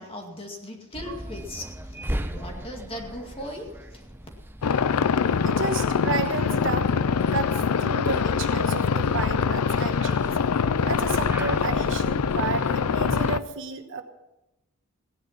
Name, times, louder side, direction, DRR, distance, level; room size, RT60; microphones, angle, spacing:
voice 1, 0.0-4.1, left 1 dB, 25° left, 2 dB, 2.1 m, -38 dB
sound 1, 0.9-13.3, right 1 dB, 10° right, 0.7 m, -38 dB
sound 2, 4.6-13.4, left 6 dB, 85° left, 0.5 m, -24 dB
voice 2, 5.4-10.4 10.8-14.0, right 4 dB, 60° right, 6 dB, 1.2 m, -32 dB
16.5 x 10.5 x 5.9 m, 0.96 s
head